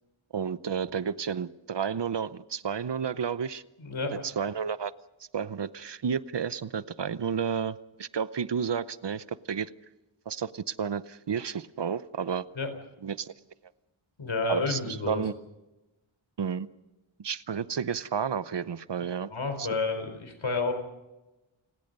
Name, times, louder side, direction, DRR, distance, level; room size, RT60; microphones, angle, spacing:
voice 1, 0.3-3.6 4.2-4.9 5.3-9.7 10.3-12.5 13.0-13.3 14.5-15.3 16.4-16.7 17.2-19.3 19.6-19.7, right 7 dB, 60° right, 16 dB, 0.8 m, -31 dB
voice 2, 3.8-4.3 12.6-12.7 14.2-15.2 19.3-20.7, left 3 dB, 75° left, 7 dB, 4.4 m, -30 dB
29.0 x 19.5 x 5.4 m, 1.0 s
wide cardioid pair, 75°, 47 cm